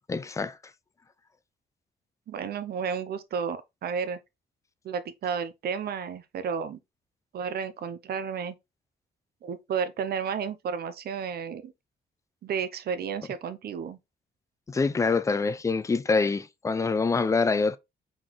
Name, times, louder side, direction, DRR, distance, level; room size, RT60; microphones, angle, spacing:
voice 1, 0.1-0.6 14.7-17.8, left 4 dB, 15° left, 0.3 m, -25 dB
voice 2, 2.3-4.2 4.8-6.8 7.3-8.6 9.4-11.7 12.4-14.0, right 6 dB, 55° right, 0.7 m, -32 dB
3.9 x 3.9 x 3.0 m
wide cardioid pair, 160°, 19 cm